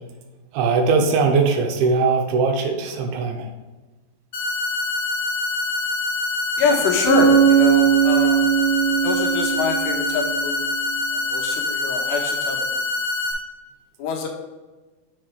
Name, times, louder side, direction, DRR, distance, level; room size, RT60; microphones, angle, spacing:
voice 1, 0.5-3.5, right 4 dB, 90° right, 3 dB, 2.7 m, -20 dB
sound 1, 4.3-13.3, left 3 dB, 60° left, 2.5 m, -25 dB
voice 2, 6.6-8.4 9.0-10.6 11.3-12.8 14.0-14.3, left 4 dB, 75° left, 1 dB, 2.7 m, -25 dB
Bass guitar, 7.0-10.7, right 9 dB, 40° left, 2.3 m, -19 dB
7.8 x 5.2 x 3.2 m, 1.2 s
omnidirectional pair, 4.4 m